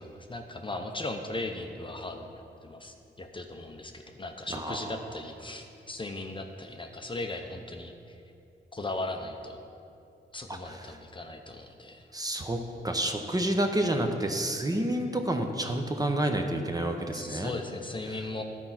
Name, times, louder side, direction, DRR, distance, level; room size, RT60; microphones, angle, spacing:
voice 1, 0.0-7.9 8.7-9.6 10.3-12.0 17.1-18.4, left 2 dB, 25° left, 4 dB, 0.6 m, -38 dB
voice 2, 4.5-5.0 10.5-11.0 12.1-12.6 12.8-17.5 18.1-18.2, right 1 dB, 20° right, 4 dB, 0.7 m, -29 dB
12.0 x 4.5 x 5.7 m, 2.6 s
cardioid pair, 90°, 20 cm